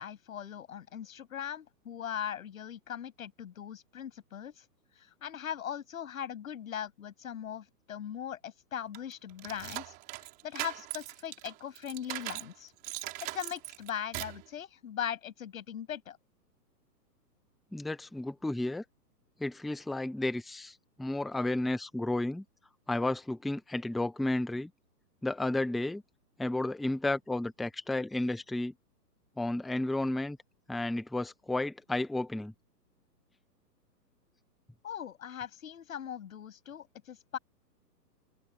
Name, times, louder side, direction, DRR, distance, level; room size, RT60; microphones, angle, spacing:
voice 1, 0.0-4.6 5.0-12.7 13.0-16.2 34.8-37.4, left 9 dB, 55° left, 7.8 m, -40 dB
sound 1, 8.9-12.5 12.8-14.4, right 20 dB, 20° right, 4.3 m, -40 dB
voice 2, 17.7-18.8 19.4-22.4 22.9-24.7 25.2-26.0 26.4-28.7 29.4-30.4 30.7-32.5, left 2 dB, ahead, 0.4 m, -32 dB
open air
hypercardioid pair, 170°, 49 cm